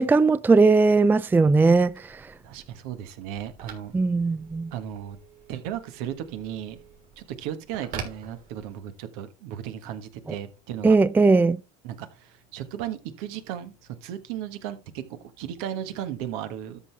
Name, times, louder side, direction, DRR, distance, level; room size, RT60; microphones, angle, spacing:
voice 1, 0.0-2.2 3.9-4.7 10.8-11.6, right 3 dB, 10° right, 0.4 m, -19 dB
Telephone, 1.7-9.0, right 7 dB, 50° right, 3.8 m, -45 dB
voice 2, 2.4-3.9 4.7-5.2 5.5-6.8 7.2-11.0 11.8-13.7 14.0-16.8, right 10 dB, 70° right, 1.6 m, -35 dB
13.0 x 6.0 x 3.4 m
hypercardioid pair, 90°, 19 cm